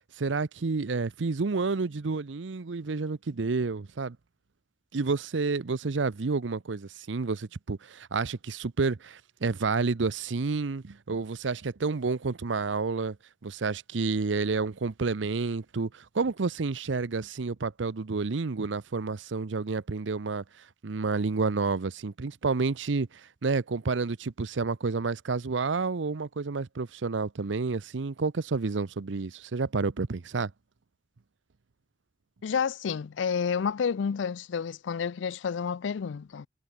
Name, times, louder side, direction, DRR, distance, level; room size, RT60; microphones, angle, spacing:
voice 1, 0.2-4.2 4.9-13.2 13.4-20.4 20.8-30.5, right 4 dB, 90° right, 0.7 m, -30 dB
voice 2, 32.4-36.5, left 6 dB, 80° left, 0.4 m, -30 dB
head